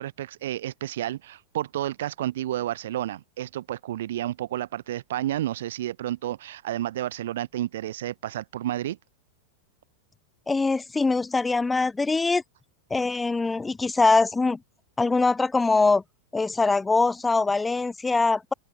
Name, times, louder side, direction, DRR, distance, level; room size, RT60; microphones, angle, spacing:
voice 1, 0.0-9.0, right 13 dB, 60° right, 0.5 m, -31 dB
voice 2, 10.5-12.4 12.9-14.6 15.0-16.0 16.3-18.5, left 3 dB, 10° left, 0.7 m, -23 dB
open air
figure-of-eight pair, 90°, 0 cm